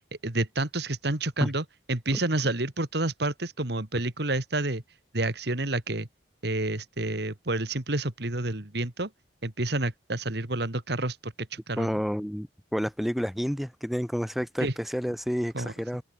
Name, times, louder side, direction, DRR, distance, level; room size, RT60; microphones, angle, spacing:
voice 1, 0.2-4.8 5.1-6.1 6.4-9.1 9.4-11.9 14.6-14.7 15.5-15.7, right 2 dB, 60° right, 2.3 m, -29 dB
voice 2, 11.8-16.0, equal, ahead, 5.8 m, -30 dB
open air
head